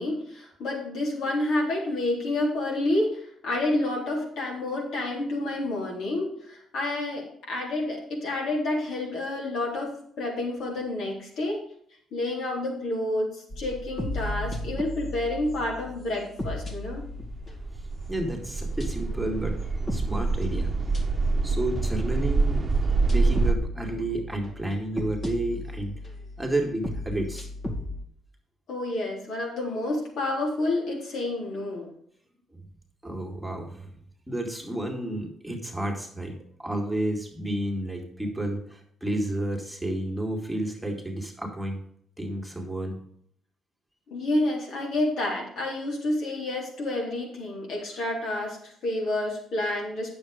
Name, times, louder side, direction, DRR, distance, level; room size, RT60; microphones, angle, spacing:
voice 1, 0.0-11.6 12.1-17.1 28.7-31.9 44.1-50.2, left 2 dB, 75° left, -2 dB, 3.7 m, -29 dB
sound 1, 13.5-17.9 18.8-19.2 19.6-21.4 21.8-21.9 23.1-28.0, left 1 dB, 35° left, 2.2 m, -36 dB
sound 2, 16.9-23.5, right 3 dB, 30° right, 1.1 m, -26 dB
voice 2, 18.1-19.6 19.9-20.7 21.4-22.6 23.1-25.9 26.4-27.5 32.5-32.7 33.0-33.9 34.3-36.3 36.6-41.8 42.2-43.0, right 1 dB, 5° right, 1 dB, 2.2 m, -31 dB
9.0 x 7.2 x 5.0 m, 0.66 s
cardioid pair, 90°, 0 cm